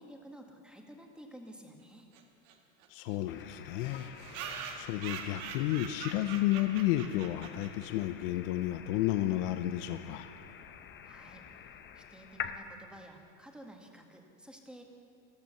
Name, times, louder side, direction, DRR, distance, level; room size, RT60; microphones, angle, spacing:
voice 1, 0.0-2.1 11.0-11.7 11.9-14.8, equal, ahead, 2 dB, 1.8 m, -52 dB
sound 1, 2.1-2.2 2.5-2.6 2.8-2.9 3.1-3.2 3.8-8.0, right 7 dB, 65° right, 1.9 m, -43 dB
voice 2, 2.9-10.3, left 14 dB, 65° left, 9 dB, 0.7 m, -32 dB
sound 2, 3.3-12.6, left 8 dB, 30° left, 0.9 m, -47 dB
14.0 x 14.0 x 6.9 m, 2.4 s
supercardioid pair, 115°, 40 cm